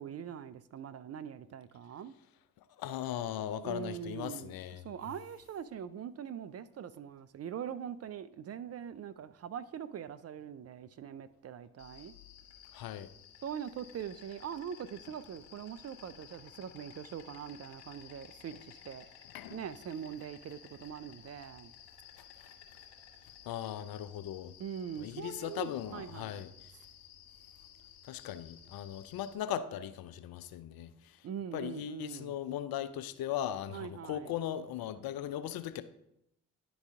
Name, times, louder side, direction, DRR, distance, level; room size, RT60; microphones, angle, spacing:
voice 1, 0.0-2.1 3.6-4.6 4.8-12.1 13.4-19.1 19.5-21.7 24.6-26.4 31.2-32.3 33.7-34.3, right 8 dB, 40° right, 0.4 m, -42 dB
voice 2, 2.8-4.9 12.7-13.1 19.3-19.6 23.4-24.5 25.0-26.5 28.1-31.2 31.5-35.8, left 10 dB, 60° left, 0.6 m, -38 dB
Insect, 11.8-29.3, left 9 dB, 75° left, 1.5 m, -55 dB
11.0 x 4.0 x 3.6 m
hypercardioid pair, 45°, 42 cm